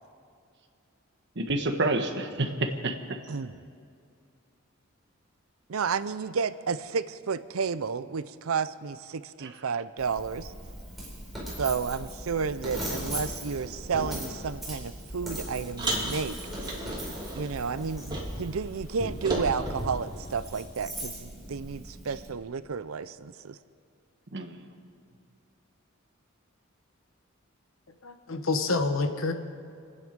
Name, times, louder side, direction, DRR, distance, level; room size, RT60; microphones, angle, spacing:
voice 1, 1.3-3.2 9.4-9.5 24.3-24.6, right 2 dB, 55° right, 5 dB, 1.4 m, -29 dB
voice 2, 5.7-10.5 11.6-16.4 17.4-23.6, right 5 dB, 80° right, 14 dB, 0.6 m, -31 dB
Coin (dropping), 10.0-22.3, equal, ahead, 4.9 m, -38 dB
Car, 15.8-18.6 18.8-20.7, right 1 dB, 20° right, 2.9 m, -35 dB
voice 3, 28.0-29.3, left 3 dB, 70° left, 7 dB, 1.2 m, -27 dB
27.5 x 9.6 x 5.2 m, 2.4 s
head